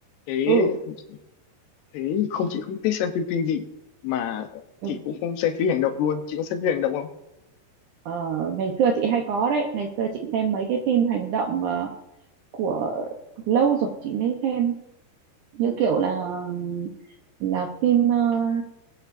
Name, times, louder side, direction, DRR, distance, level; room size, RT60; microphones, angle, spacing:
voice 1, 0.3-0.8 1.9-3.7 4.0-7.1, left 8 dB, 80° left, 7 dB, 3.0 m, -26 dB
voice 2, 8.1-11.9 12.5-13.1 13.5-14.8 15.5-16.9 17.4-18.6, right 7 dB, 75° right, 2 dB, 1.9 m, -24 dB
21.0 x 9.3 x 2.6 m, 0.88 s
omnidirectional pair, 4.8 m